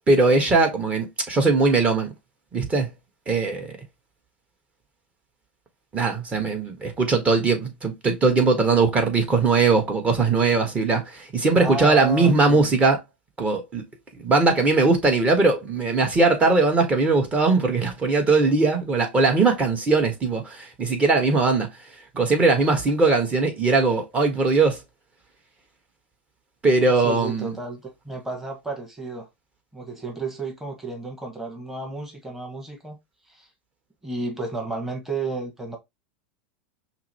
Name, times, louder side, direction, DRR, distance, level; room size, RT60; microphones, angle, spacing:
voice 1, 0.1-2.1 2.5-2.9 3.3-3.7 5.9-13.0 13.4-13.8 14.2-21.7 22.1-24.8 26.6-27.5, right 3 dB, 20° right, 1.5 m, -20 dB
voice 2, 11.5-12.7 26.8-29.3 29.7-33.0 33.3-33.5 34.0-35.8, right 3 dB, 5° right, 1.4 m, -32 dB
5.6 x 2.2 x 2.9 m
hypercardioid pair, 100°, 6 cm